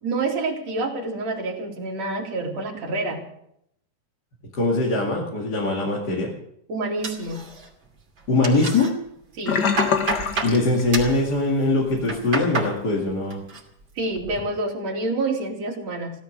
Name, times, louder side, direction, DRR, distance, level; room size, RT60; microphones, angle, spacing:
voice 1, 0.0-3.2 6.7-7.4 9.4-9.6 14.0-16.1, right 2 dB, 55° right, 0 dB, 3.7 m, -27 dB
voice 2, 4.5-6.4 8.3-8.9 10.4-13.4, left 2 dB, 35° left, -2 dB, 2.4 m, -22 dB
sound 1, 7.0-7.9 8.2-8.9 9.3-10.6 10.9-11.2 11.8-12.7 13.1-13.6 14.0-14.4, right 3 dB, 35° right, 3.3 m, -30 dB
Sink (filling or washing), 9.5-11.4 11.7-12.0 12.4-12.5, left 6 dB, 50° left, 1.3 m, -25 dB
16.5 x 12.5 x 6.6 m, 0.73 s
omnidirectional pair, 3.8 m